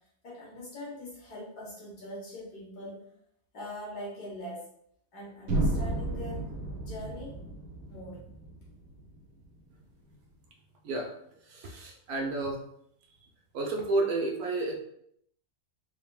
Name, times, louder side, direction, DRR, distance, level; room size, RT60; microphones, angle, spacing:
voice 1, 0.2-3.0 3.5-4.6 5.1-6.4 6.8-7.3 7.9-8.2, left 1 dB, 75° left, -4 dB, 1.9 m, -42 dB
sound 1, 5.5-9.4, right 2 dB, 85° right, 1.3 m, -33 dB
voice 2, 11.4-12.6 13.5-14.8, right 2 dB, 70° right, 1 dB, 1.1 m, -31 dB
4.1 x 3.4 x 2.3 m, 0.72 s
omnidirectional pair, 1.7 m